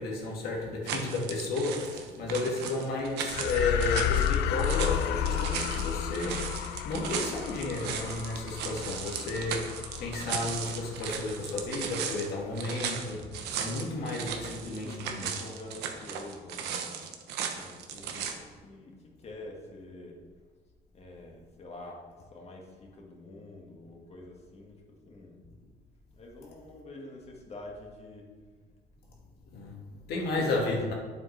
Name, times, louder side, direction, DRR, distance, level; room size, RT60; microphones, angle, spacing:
voice 1, 0.0-15.3 29.5-30.9, left 2 dB, 70° left, 1.9 m, -33 dB
sound 1, 0.8-18.3, right 7 dB, 85° right, 0.9 m, -37 dB
sound 2, 3.3-11.9, left 10 dB, 90° left, 0.4 m, -32 dB
voice 2, 14.3-20.2 20.9-22.0 22.3-25.4 26.1-28.3 29.9-30.1 30.4-30.9, left 2 dB, 40° left, 1.7 m, -47 dB
8.8 x 7.3 x 3.3 m
cardioid pair, 110°, 17 cm